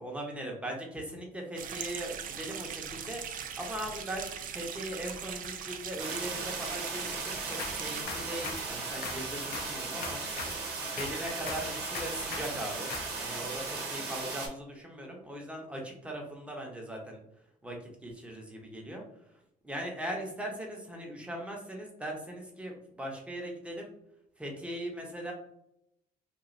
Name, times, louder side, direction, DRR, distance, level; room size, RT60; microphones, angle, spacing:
voice 1, 0.0-3.2 3.6-10.2 10.9-12.9 13.2-17.2 17.6-17.8 18.0-19.0 19.6-23.9 24.4-25.3, right 1 dB, 5° right, 0 dB, 0.8 m, -39 dB
sound 1, 1.6-8.0, right 8 dB, 55° right, 0.4 m, -40 dB
sound 2, 6.0-14.5, right 4 dB, 80° right, 0.8 m, -37 dB
sound 3, 7.3-13.1, left 4 dB, 70° left, 0.6 m, -42 dB
3.0 x 2.4 x 2.5 m, 0.78 s
cardioid pair, 110°, 17 cm